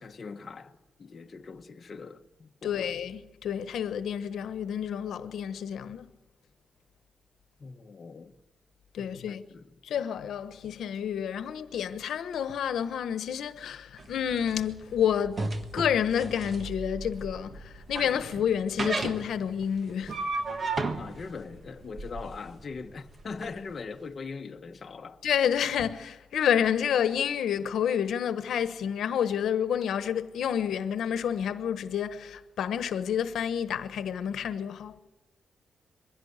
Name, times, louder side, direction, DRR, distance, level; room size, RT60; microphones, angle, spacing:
voice 1, 0.0-2.8 7.6-8.3 9.0-9.6 21.0-25.2, left 4 dB, 35° left, 1.2 m, -41 dB
voice 2, 2.6-6.1 8.9-9.4 9.8-15.5 15.7-20.2 25.2-35.0, left 8 dB, 85° left, 1.2 m, -29 dB
sound 1, 14.0-23.5, right 3 dB, 30° right, 1.4 m, -35 dB
23.0 x 16.0 x 8.2 m
wide cardioid pair, 175°, 0 cm